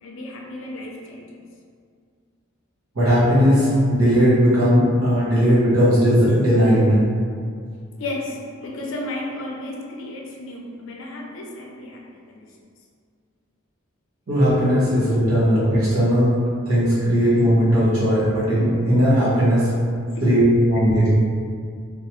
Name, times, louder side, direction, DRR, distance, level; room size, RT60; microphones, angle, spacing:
voice 1, 0.0-1.4 8.0-12.6 20.2-20.3 20.9-21.1, left 2 dB, 65° left, -1 dB, 0.4 m, -34 dB
voice 2, 2.9-7.0 14.3-16.3 16.7-19.7 20.2-20.4 20.7-21.1, equal, 85° right, -10 dB, 1.2 m, -17 dB
3.1 x 2.1 x 3.0 m, 2.2 s
head